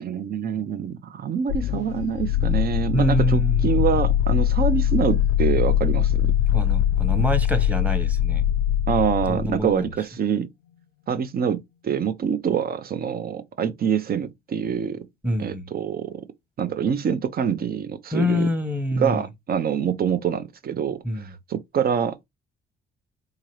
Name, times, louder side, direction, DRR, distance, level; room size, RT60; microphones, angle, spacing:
voice 1, 0.0-6.3 8.9-10.5 11.1-15.1 15.4-16.2 16.6-18.5 19.0-22.2, right 7 dB, 50° right, 0.7 m, -25 dB
sound 1, 1.5-9.7, left 10 dB, 85° left, 0.4 m, -22 dB
voice 2, 2.9-3.7 6.5-8.4 9.3-9.9 15.2-15.7 18.1-19.3 21.0-21.3, equal, 5° right, 1.0 m, -26 dB
3.8 x 2.8 x 3.1 m
cardioid pair, 90°, 20 cm